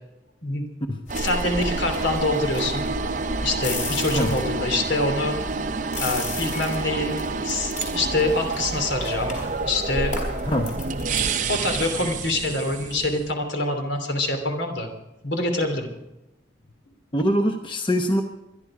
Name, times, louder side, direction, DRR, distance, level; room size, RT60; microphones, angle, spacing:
voice 1, 1.1-2.9 3.4-5.4 6.0-10.2 11.3-14.9 15.2-15.9, left 2 dB, 70° left, 5 dB, 2.9 m, -25 dB
sound 1, 1.1-11.3, left 1 dB, 40° left, 4.2 m, -33 dB
sound 2, 1.1-13.3, right 4 dB, 40° right, 0.7 m, -29 dB
voice 2, 17.1-18.2, equal, 25° left, 4 dB, 1.0 m, -23 dB
24.0 x 11.0 x 4.9 m, 0.95 s
head